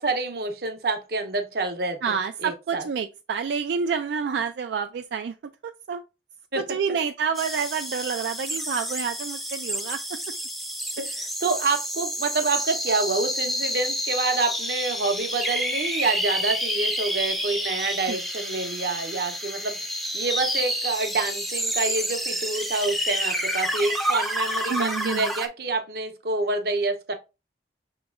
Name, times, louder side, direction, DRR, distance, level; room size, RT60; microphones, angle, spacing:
voice 1, 0.0-2.9 6.5-6.6 11.0-27.1, right 3 dB, 60° right, 0.8 m, -27 dB
voice 2, 2.0-5.3 5.6-6.0 6.6-10.0 11.0-11.1 18.1-18.2 24.7-25.3, right 6 dB, 80° right, 0.3 m, -28 dB
sound 1, 7.3-25.5, equal, ahead, 0.5 m, -29 dB
6.0 x 2.9 x 2.5 m
head